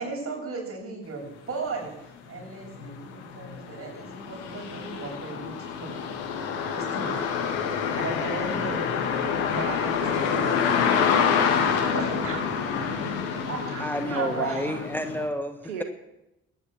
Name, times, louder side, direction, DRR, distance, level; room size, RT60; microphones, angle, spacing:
voice 1, 0.0-1.9 2.3-6.0 6.7-7.3 8.0-8.8 9.5-10.5 11.9-12.4 13.5-14.7, right 3 dB, 40° right, -1 dB, 7.7 m, -35 dB
sound 1, 1.8-1.9 2.4-15.3, left 7 dB, 80° left, 1.8 m, -27 dB
voice 2, 10.0-13.7 13.9-14.9 15.6-15.8, right 5 dB, 80° right, 4 dB, 1.4 m, -40 dB
voice 3, 13.8-15.8, left 1 dB, 5° left, 7 dB, 1.4 m, -30 dB
22.0 x 9.9 x 6.2 m, 0.90 s
figure-of-eight pair, 40°, 34 cm